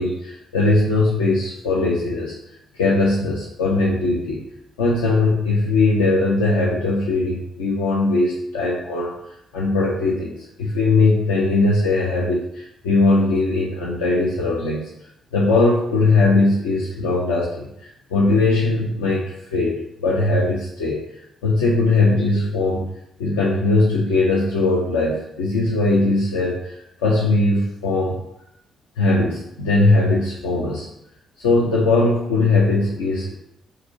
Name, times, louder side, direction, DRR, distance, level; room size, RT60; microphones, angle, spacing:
voice 1, 0.0-2.4 2.8-4.4 4.8-9.1 9.5-14.9 15.3-19.3 19.5-21.0 21.4-22.9 23.2-28.2 29.0-30.9 31.4-33.4, left 2 dB, 75° left, -4 dB, 0.5 m, -20 dB
4.6 x 2.7 x 2.7 m, 0.79 s
figure-of-eight pair, 40°, 0 cm